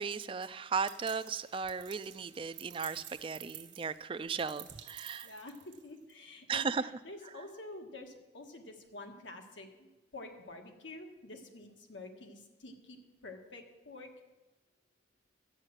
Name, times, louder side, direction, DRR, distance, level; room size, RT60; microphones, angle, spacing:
voice 1, 0.0-5.3 6.5-6.9, right 5 dB, 30° right, 14 dB, 0.3 m, -36 dB
sound 1, 0.9-6.1, right 11 dB, 80° right, 1.2 m, -51 dB
voice 2, 5.2-5.5 5.8-14.1, left 2 dB, 85° left, 3 dB, 1.6 m, -48 dB
11.0 x 8.8 x 7.5 m, 1.1 s
head